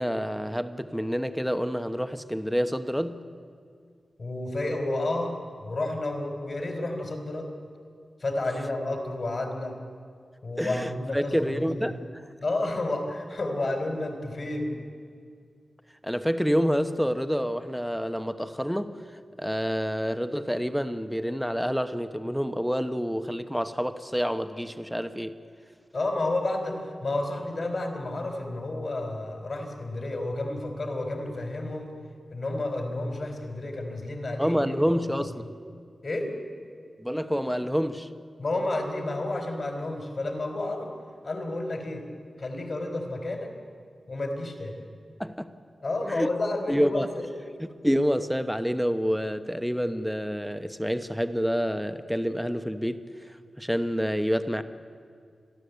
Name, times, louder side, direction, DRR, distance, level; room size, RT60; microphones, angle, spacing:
voice 1, 0.0-3.2 10.6-12.0 16.0-25.4 34.4-35.4 37.0-38.1 45.2-45.5 46.1-46.3 46.7-47.1 47.6-54.6, equal, ahead, 9 dB, 1.0 m, -28 dB
voice 2, 4.2-7.5 8.2-9.8 10.4-11.9 12.4-14.7 25.9-31.9 32.3-34.6 35.3-35.4 36.0-36.3 38.4-40.9 41.2-42.1 42.4-43.5 44.1-44.8 45.8-47.3, left 2 dB, 55° left, 4 dB, 3.7 m, -31 dB
29.0 x 11.0 x 8.1 m, 2.2 s
wide cardioid pair, 75°, 0 cm